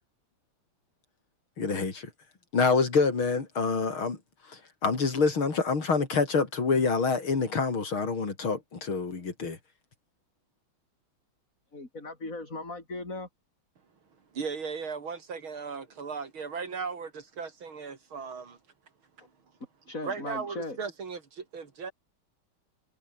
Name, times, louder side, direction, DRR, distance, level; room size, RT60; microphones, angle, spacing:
voice 1, 1.6-2.1 2.5-4.2 4.5-9.6, left 4 dB, 80° left, 4.4 m, -27 dB
voice 2, 11.7-13.3 19.9-20.8, left 2 dB, 40° left, 6.0 m, -38 dB
voice 3, 14.3-18.6 20.0-21.9, right 5 dB, 80° right, 3.8 m, -37 dB
omnidirectional pair, 2.2 m